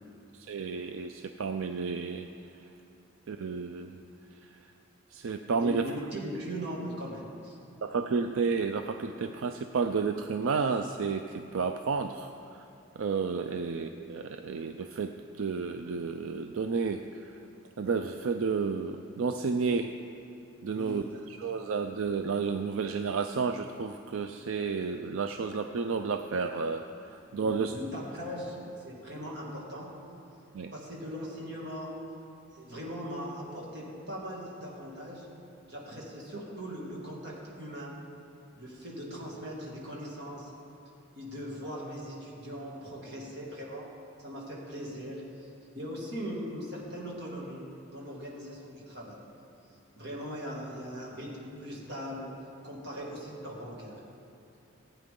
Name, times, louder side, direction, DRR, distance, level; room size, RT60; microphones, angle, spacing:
voice 1, 0.3-2.3 3.3-4.0 4.4-4.6 5.1-5.9 7.8-12.6 13.0-17.4 17.8-19.9 20.6-21.0 21.4-27.8 30.5-30.7, right 5 dB, 80° right, 7 dB, 0.4 m, -31 dB
voice 2, 5.6-7.6 20.7-21.1 27.4-28.6 28.8-29.9 30.7-32.0 32.5-35.3 35.7-38.0 38.6-40.5 41.2-43.9 44.2-45.5 45.7-49.2 50.0-52.3 52.6-54.0, equal, 55° right, -4 dB, 2.3 m, -40 dB
15.5 x 8.9 x 3.8 m, 2.8 s
head